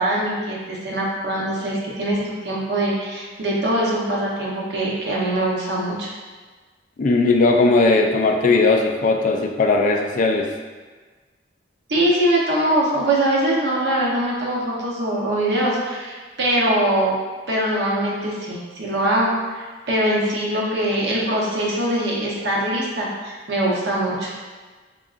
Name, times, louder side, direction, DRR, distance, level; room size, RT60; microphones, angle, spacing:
voice 1, 0.0-6.1 11.9-17.1 17.5-24.3, right 1 dB, 60° right, -4 dB, 0.8 m, -22 dB
voice 2, 7.0-10.5, left 3 dB, 45° left, 3 dB, 0.3 m, -18 dB
3.7 x 3.6 x 2.4 m, 1.4 s
head